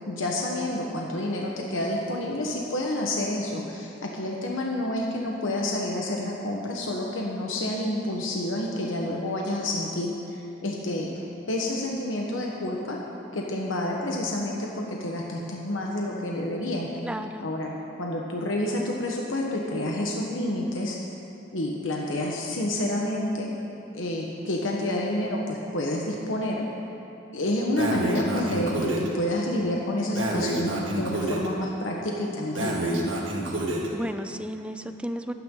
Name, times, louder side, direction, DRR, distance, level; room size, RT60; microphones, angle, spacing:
voice 1, 0.1-13.0 13.3-16.9 17.4-21.0 21.5-23.5 23.9-25.4 25.7-26.6 27.3-32.9, left 1 dB, 80° left, -2 dB, 1.3 m, -29 dB
voice 2, 17.0-17.5 33.9-35.3, equal, 5° right, 8 dB, 0.5 m, -33 dB
Breathing, 27.8-29.1 30.1-31.5 32.5-33.9, right 1 dB, 75° right, 2.0 m, -28 dB
23.0 x 9.3 x 3.9 m, 2.8 s
head